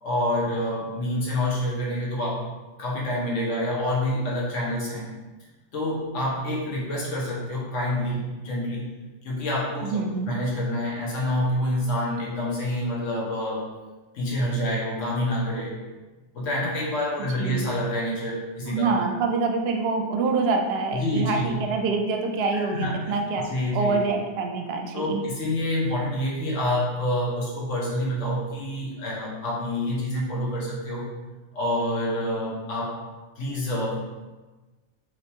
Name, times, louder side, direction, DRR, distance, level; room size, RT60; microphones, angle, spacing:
voice 1, 0.0-2.4 2.8-5.1 5.7-8.9 9.2-13.7 14.1-15.8 16.3-19.0 20.9-21.5 22.5-23.2 23.5-23.9 24.9-31.1 31.5-33.0 33.4-34.0, left 1 dB, 75° left, -5 dB, 1.4 m, -27 dB
voice 2, 9.8-10.3 17.2-17.7 18.7-23.5 23.7-25.2, right 4 dB, 60° right, 3 dB, 0.7 m, -26 dB
5.0 x 3.1 x 2.7 m, 1.2 s
omnidirectional pair, 1.3 m